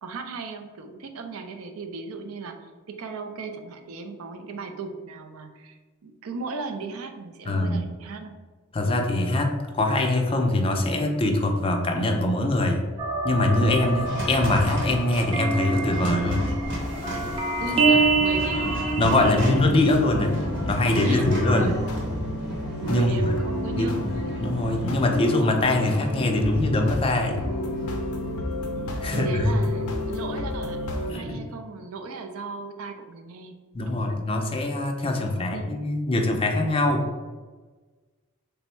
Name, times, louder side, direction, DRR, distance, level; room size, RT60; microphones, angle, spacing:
voice 1, 0.0-8.3 17.6-18.8 19.1-19.5 21.0-21.3 21.5-21.8 22.8-24.2 29.0-33.6 33.9-34.1 35.1-35.7, right 4 dB, 75° right, 6 dB, 0.4 m, -36 dB
voice 2, 7.5-7.8 8.7-12.8 13.2-16.6 19.0-20.4 20.6-21.7 22.9-23.2 23.8-23.9 24.4-27.4 29.0-29.6 31.1-31.4 33.7-37.1, left 2 dB, 25° left, 3 dB, 0.4 m, -23 dB
sound 1, 13.0-19.6, right 3 dB, 25° right, 0.6 m, -26 dB
sound 2, 13.5-29.7, equal, 60° right, 1.0 m, -33 dB
sound 3, 19.2-31.1, left 1 dB, 85° left, 0.5 m, -32 dB
3.4 x 2.0 x 4.3 m, 1.3 s
head